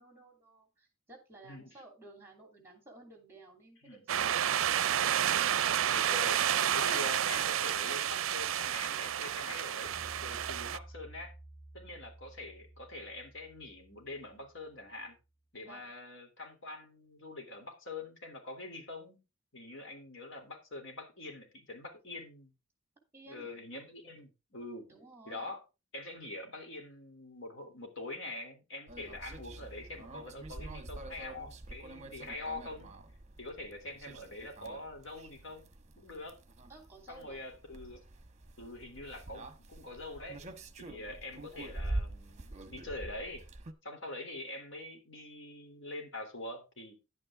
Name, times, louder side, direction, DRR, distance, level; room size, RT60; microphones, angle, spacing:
voice 1, 0.0-4.8 15.6-16.0 23.1-23.7 24.9-25.5 36.7-37.4, right 2 dB, 10° right, 3.0 m, -55 dB
voice 2, 1.4-1.7 3.8-4.0 5.9-6.4 6.7-9.9 10.2-11.3 11.7-15.2 15.5-19.2 19.5-22.5 23.3-24.9 25.3-25.6 25.9-32.9 33.4-36.4 37.1-38.0 38.6-40.4 40.8-43.4 43.8-47.0, left 2 dB, 65° left, 3.2 m, -44 dB
sound 1, 4.1-10.8, right 10 dB, 75° right, 0.5 m, -30 dB
sound 2, 9.8-14.9, right 1 dB, 15° left, 4.3 m, -53 dB
sound 3, 28.9-43.7, right 1 dB, 35° right, 1.1 m, -45 dB
10.5 x 8.8 x 3.6 m
head